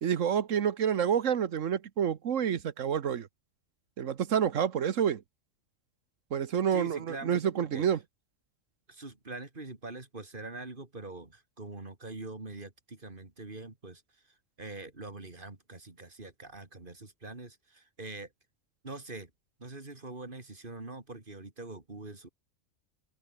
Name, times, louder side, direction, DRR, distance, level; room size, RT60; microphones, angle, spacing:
voice 1, 0.0-3.3 4.0-5.2 6.3-8.0, right 8 dB, 80° right, 1.4 m, -28 dB
voice 2, 6.7-7.9 8.9-14.0 14.6-18.3 18.8-19.3 19.6-22.3, right 2 dB, 40° right, 3.3 m, -43 dB
open air
omnidirectional pair, 1.3 m